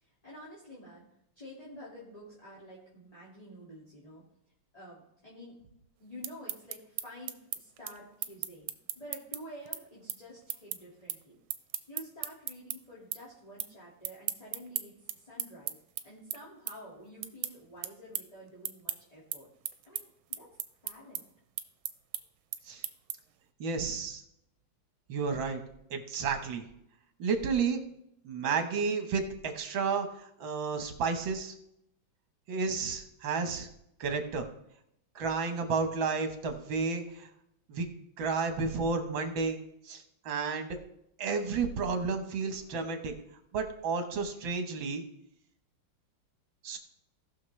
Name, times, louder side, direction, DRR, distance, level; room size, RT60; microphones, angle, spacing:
voice 1, 0.0-1.0 1.4-4.2 4.7-5.6 6.0-11.4 11.9-15.7 16.0-19.5 19.8-20.5 20.8-21.2, equal, 20° left, -7 dB, 2.2 m, -49 dB
sound 1, 6.0-12.8 13.1-13.7 14.0-23.4, right 12 dB, 85° right, 1.5 m, -37 dB
voice 2, 23.6-24.2 25.1-25.6 25.9-26.7 27.2-27.8 28.2-31.6 32.5-33.7 34.0-34.5 35.2-37.3 37.7-37.9 38.2-40.8 41.2-43.1 43.5-45.0 46.6-46.8, right 5 dB, 70° right, 6 dB, 2.0 m, -32 dB
18.0 x 6.3 x 3.2 m, 0.77 s
omnidirectional pair, 2.2 m